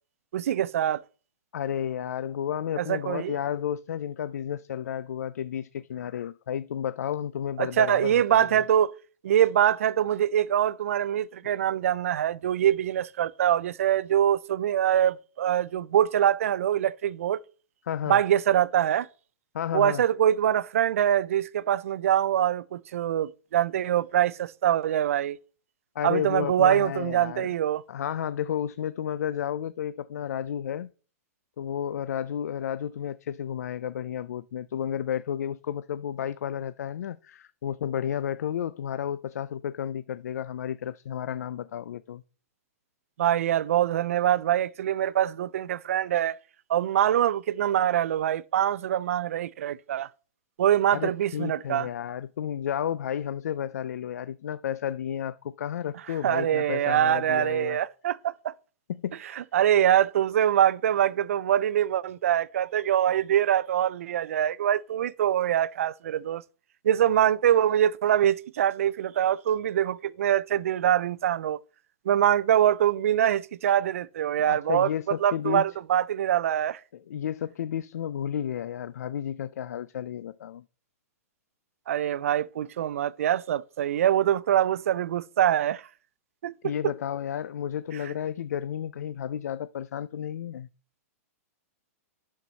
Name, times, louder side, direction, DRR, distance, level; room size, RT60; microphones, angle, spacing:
voice 1, 0.3-1.0 2.8-3.4 7.6-8.9 9.2-17.4 18.1-19.1 19.7-25.4 26.0-27.8 43.2-46.4 46.7-50.1 50.6-51.9 56.2-58.5 59.4-66.4 66.8-71.6 72.1-76.8 81.9-85.8 86.4-86.7, right 10 dB, 60° right, 0.4 m, -24 dB
voice 2, 1.5-8.6 17.8-18.2 19.5-20.0 26.0-27.5 27.9-30.9 31.6-42.2 50.9-57.8 58.9-59.4 74.4-75.6 76.9-80.7 86.6-90.7, left 9 dB, 90° left, 0.4 m, -32 dB
11.5 x 4.6 x 4.0 m
hypercardioid pair, 175°, 8 cm